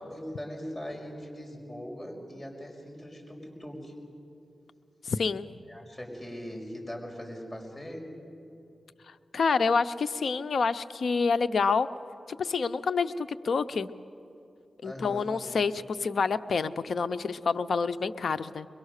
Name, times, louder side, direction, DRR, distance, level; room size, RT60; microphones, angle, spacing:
voice 1, 0.1-3.9 5.7-8.0 14.8-15.3, equal, 20° left, -1 dB, 5.6 m, -40 dB
voice 2, 5.0-5.5 9.3-11.9 12.3-13.9 14.8-18.7, left 5 dB, 70° left, 12 dB, 0.6 m, -28 dB
23.0 x 22.5 x 6.6 m, 2.7 s
cardioid pair, 55°, 0 cm